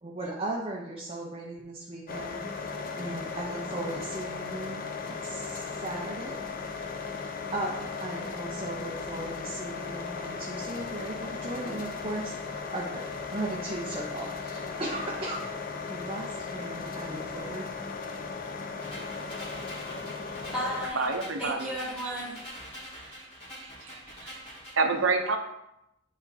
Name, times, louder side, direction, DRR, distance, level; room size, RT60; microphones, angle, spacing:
voice 1, 0.0-2.4 3.0-6.4 7.2-13.0 13.3-15.4 15.9-17.6, right 2 dB, 30° right, -3 dB, 0.7 m, -37 dB
sound 1, 2.1-20.9, left 4 dB, 45° left, 0.5 m, -37 dB
sound 2, 18.8-24.8, equal, 30° left, 2.3 m, -45 dB
voice 2, 19.9-21.1 21.4-22.3, equal, 5° right, -8 dB, 1.9 m, -35 dB
voice 3, 21.0-21.7 22.8-23.3 23.6-24.4 24.8-25.4, right 4 dB, 85° right, 4 dB, 0.7 m, -29 dB
9.3 x 4.2 x 2.7 m, 0.86 s
head